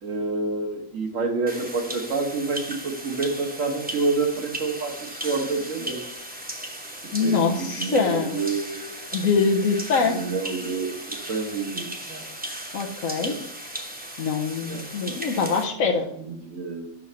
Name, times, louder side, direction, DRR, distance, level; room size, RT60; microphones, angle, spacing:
voice 1, 0.0-6.0 7.2-8.9 10.0-12.3 13.2-13.4 14.6-15.2 16.1-16.9, right 3 dB, 75° right, 3 dB, 1.7 m, -28 dB
sound 1, 1.5-15.7, right 1 dB, 10° right, 0.8 m, -36 dB
voice 2, 7.1-8.4 9.1-10.2 12.7-13.3 14.2-16.1, left 5 dB, 90° left, 0 dB, 1.2 m, -23 dB
6.3 x 4.7 x 6.8 m, 0.73 s
omnidirectional pair, 1.4 m